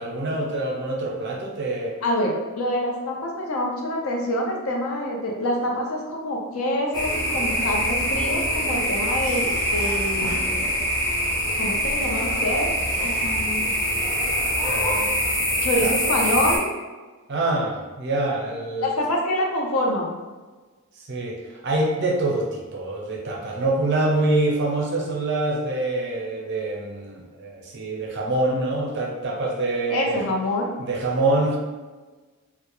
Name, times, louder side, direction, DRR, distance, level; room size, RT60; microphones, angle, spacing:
voice 1, 0.0-2.0 14.6-15.2 15.8-15.9 17.3-19.0 21.1-30.2 30.8-31.6, right 2 dB, 55° right, -1 dB, 0.5 m, -25 dB
voice 2, 2.0-10.7 11.6-12.7 13.0-13.7 15.6-16.7 18.8-20.2 29.9-30.7, left 1 dB, 70° left, 0 dB, 0.5 m, -26 dB
sound 1, 6.9-16.6, equal, 15° left, 0.5 m, -24 dB
2.2 x 2.1 x 2.9 m, 1.3 s
head